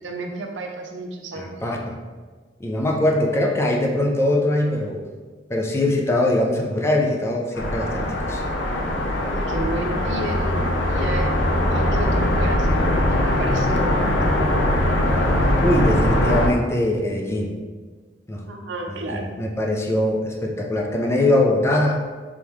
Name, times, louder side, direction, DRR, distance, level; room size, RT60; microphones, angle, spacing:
voice 1, 0.0-1.5 9.2-11.4 11.7-14.1 18.5-19.3, right 2 dB, 80° right, 3 dB, 0.5 m, -32 dB
voice 2, 1.3-2.0 2.6-5.0 5.5-8.4 15.6-17.6 18.3-18.4 18.9-22.0, left 1 dB, 15° left, 0 dB, 0.4 m, -22 dB
sound 1, 7.5-16.5, left 1 dB, 90° left, 0.5 m, -21 dB
3.5 x 3.5 x 3.0 m, 1.4 s
head